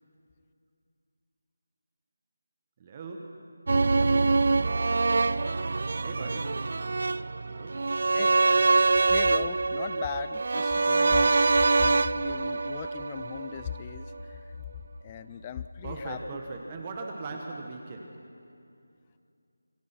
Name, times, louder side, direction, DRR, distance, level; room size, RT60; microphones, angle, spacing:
voice 1, 2.8-4.6 6.0-6.9 7.4-7.9 15.8-18.3, right 3 dB, 20° right, 2 dB, 1.2 m, -40 dB
sound 1, 3.7-13.8 14.1-14.2, right 3 dB, 50° right, 0.4 m, -25 dB
voice 2, 8.7-14.4 15.0-16.2, left 8 dB, 15° left, 13 dB, 0.5 m, -38 dB
27.0 x 17.5 x 5.8 m, 2.6 s
figure-of-eight pair, 170°, 0 cm